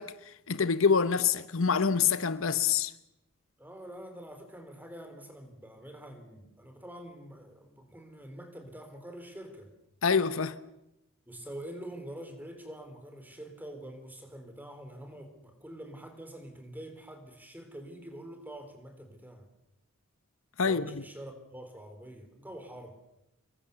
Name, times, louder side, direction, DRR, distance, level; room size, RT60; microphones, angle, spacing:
voice 1, 0.0-2.9 10.0-10.6 20.6-20.9, left 6 dB, 65° left, 0.9 m, -26 dB
voice 2, 3.6-9.7 11.3-19.5 20.6-23.0, right 1 dB, 10° right, 3.6 m, -46 dB
26.5 x 22.5 x 6.9 m
head